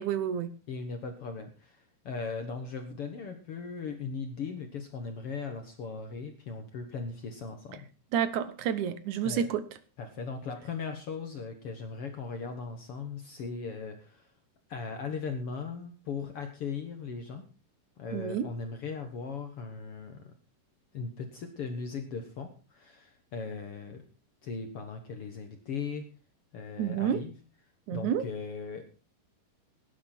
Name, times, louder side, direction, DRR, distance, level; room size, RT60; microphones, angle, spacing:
voice 1, 0.0-0.5 8.1-9.6 18.1-18.5 26.8-27.2 27.9-28.2, right 9 dB, 70° right, 14 dB, 2.3 m, -29 dB
voice 2, 0.7-7.9 9.2-9.5 10.0-14.3 14.7-17.4 18.0-20.3 20.9-24.0 24.4-26.1 26.5-27.3 27.9-28.9, left 5 dB, 55° left, 6 dB, 1.9 m, -38 dB
18.0 x 10.0 x 4.4 m, 0.34 s
omnidirectional pair, 3.9 m